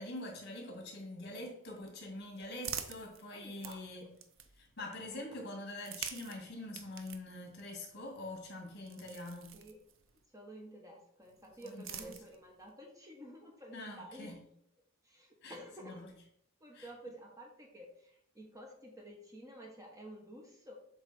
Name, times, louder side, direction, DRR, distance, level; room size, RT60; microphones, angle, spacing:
voice 1, 0.0-4.1 4.6-9.6 11.6-12.1 13.7-14.4 15.4-15.6 15.8-16.1 16.7-16.9, left 1 dB, 55° left, 2.3 m, -45 dB
sound 1, 1.8-4.8 5.6-10.2 11.2-12.7, right 8 dB, 70° right, 0.8 m, -48 dB
voice 2, 3.3-4.1 5.1-5.4 9.5-9.8 10.3-14.3 15.0-16.0 16.6-20.8, right 1 dB, 15° right, 1.3 m, -51 dB
8.0 x 3.6 x 6.2 m
head